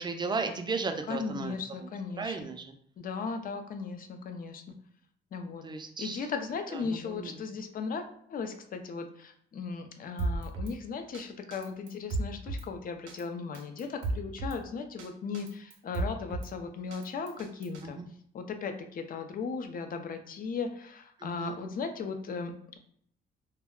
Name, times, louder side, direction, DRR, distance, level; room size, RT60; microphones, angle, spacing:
voice 1, 0.0-1.5 2.2-2.6 5.6-6.2 6.9-7.3 17.8-18.0 21.2-21.6, right 4 dB, 20° right, 6 dB, 0.4 m, -34 dB
voice 2, 1.1-2.5 3.0-4.7 5.3-5.6 6.0-18.0 18.3-22.8, left 5 dB, 45° left, 6 dB, 0.4 m, -37 dB
Drum kit, 10.2-10.8 11.1-11.2 11.5-12.7 13.1-13.2 13.5-14.6 15.0-15.1 15.3-16.5 16.9-17.8, right 2 dB, 80° right, 0.5 m, -34 dB
2.2 x 2.1 x 3.5 m, 0.64 s
cardioid pair, 90°, 20 cm